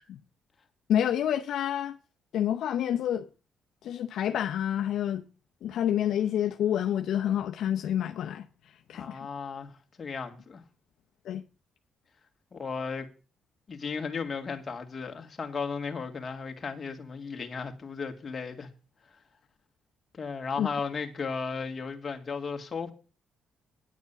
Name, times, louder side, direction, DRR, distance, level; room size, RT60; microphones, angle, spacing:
voice 1, 0.9-2.0 2.3-3.3 3.8-5.3 5.6-8.5 8.9-9.3 11.2-11.4 20.6-20.7, left 10 dB, 75° left, 0.7 m, -28 dB
voice 2, 8.9-9.7 10.0-10.6 12.5-13.1 13.7-18.7 20.2-22.9, left 5 dB, 35° left, 2.0 m, -35 dB
10.0 x 7.2 x 6.9 m
cardioid pair, 95°, 0 cm